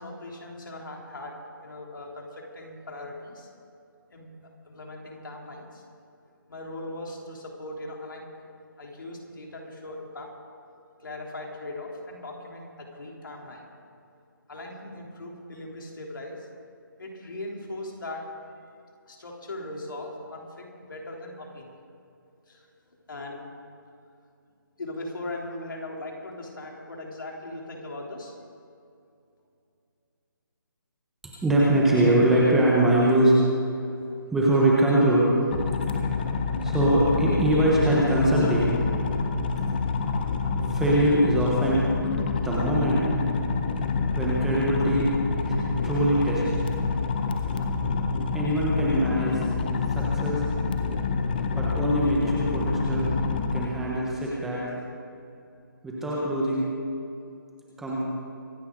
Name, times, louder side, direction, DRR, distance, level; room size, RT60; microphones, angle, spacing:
voice 1, 0.0-3.5 4.1-4.3 4.7-5.8 6.5-8.4 8.8-10.3 11.0-13.7 14.5-16.5 17.0-18.3 19.1-21.8 22.5-22.7 23.1-23.4 24.8-28.4, left 2 dB, 65° left, -1 dB, 3.6 m, -39 dB
voice 2, 31.2-33.4 34.3-35.3 36.6-38.7 40.7-41.9 42.4-43.1 44.2-45.1 45.4-45.5 45.8-46.6 48.3-49.4 49.9-50.4 51.6-53.2 53.5-54.6 55.8-56.7 57.8-58.0, right 1 dB, 5° right, -5 dB, 1.3 m, -22 dB
sound 1, 35.5-53.7, left 4 dB, 25° left, 0.9 m, -27 dB
25.0 x 11.0 x 4.0 m, 2.5 s
hypercardioid pair, 170°, 12 cm